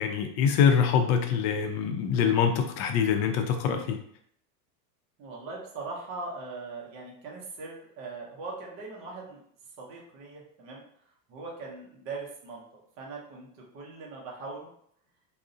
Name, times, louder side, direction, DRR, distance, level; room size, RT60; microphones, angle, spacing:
voice 1, 0.0-4.0, left 7 dB, 65° left, 5 dB, 0.5 m, -24 dB
voice 2, 5.2-9.4 9.8-10.8 11.3-12.6 13.0-13.5 13.7-14.7, right 3 dB, 30° right, -2 dB, 0.4 m, -40 dB
2.5 x 2.0 x 2.4 m, 0.66 s
supercardioid pair, 145°, 49 cm